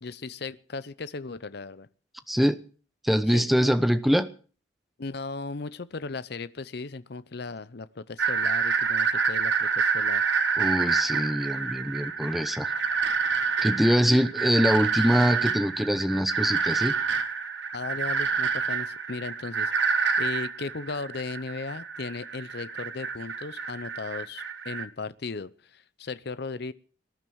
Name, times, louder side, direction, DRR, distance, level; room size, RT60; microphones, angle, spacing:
voice 1, 0.0-1.9 3.3-3.5 5.0-10.2 17.7-26.7, left 3 dB, 60° left, 15 dB, 0.7 m, -36 dB
voice 2, 2.3-2.6 3.0-4.3 10.6-12.7 13.6-16.9, equal, ahead, 11 dB, 0.9 m, -23 dB
sound 1, 8.2-24.8, right 5 dB, 70° right, 1.6 m, -28 dB
19.0 x 11.0 x 6.4 m, 0.40 s
head